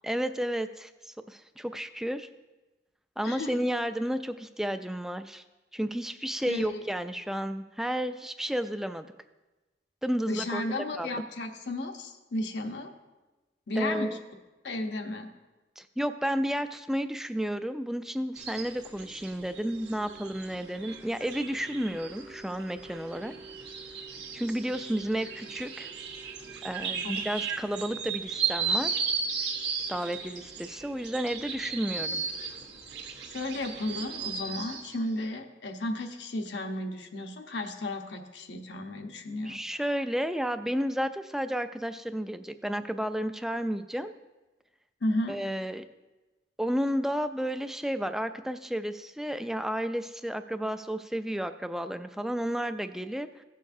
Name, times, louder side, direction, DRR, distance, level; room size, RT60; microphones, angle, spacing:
voice 1, 0.0-2.3 3.2-5.4 5.7-9.1 10.0-10.6 10.9-11.2 13.8-14.2 15.8-23.3 24.3-25.9 26.6-28.9 29.9-32.2 39.5-44.1 45.3-45.8 46.6-53.4, equal, 5° right, 9 dB, 0.3 m, -32 dB
voice 2, 6.5-6.8 10.2-12.9 13.7-14.2 14.6-15.3 33.3-39.6 45.0-45.4, left 1 dB, 90° left, 3 dB, 1.0 m, -33 dB
sound 1, 18.4-35.0, right 5 dB, 85° right, 1.3 m, -36 dB
16.0 x 6.6 x 2.7 m, 1.1 s
head